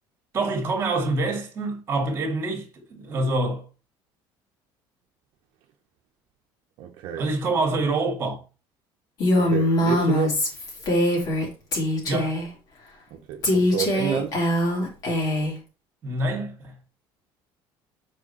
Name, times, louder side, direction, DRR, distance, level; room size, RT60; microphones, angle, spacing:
voice 1, 0.3-3.6 7.1-8.4 12.1-12.4 16.0-16.7, right 2 dB, 25° right, 2.1 m, -26 dB
voice 2, 6.8-7.2 9.3-10.4 13.1-14.4, right 10 dB, 65° right, 0.9 m, -29 dB
Female speech woman speaking, 9.2-11.5 11.7-12.5 13.4-15.6, left 1 dB, 40° left, 3.0 m, -22 dB
7.6 x 5.0 x 4.3 m
cardioid pair, 175°, 10 cm